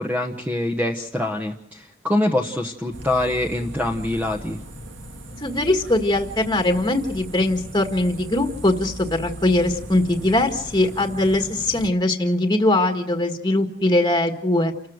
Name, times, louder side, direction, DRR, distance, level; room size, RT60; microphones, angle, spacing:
voice 1, 0.0-4.6, left 1 dB, 10° right, 2 dB, 1.1 m, -24 dB
sound 1, 2.9-11.9, right 1 dB, 70° right, 2.3 m, -38 dB
voice 2, 5.4-14.7, left 1 dB, 20° left, 4 dB, 1.6 m, -21 dB
29.5 x 14.0 x 8.0 m, 0.71 s
head